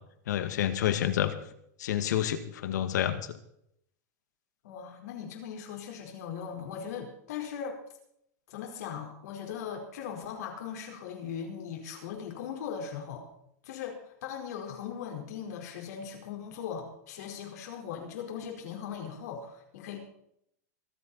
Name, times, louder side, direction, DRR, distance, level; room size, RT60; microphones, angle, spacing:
voice 1, 0.3-1.3 1.8-3.4, left 11 dB, 85° left, 10 dB, 1.9 m, -29 dB
voice 2, 4.6-7.8 8.5-13.3 13.6-20.0, left 7 dB, 65° left, 2 dB, 4.6 m, -39 dB
26.0 x 8.6 x 4.3 m, 0.73 s
supercardioid pair, 170°, 9 cm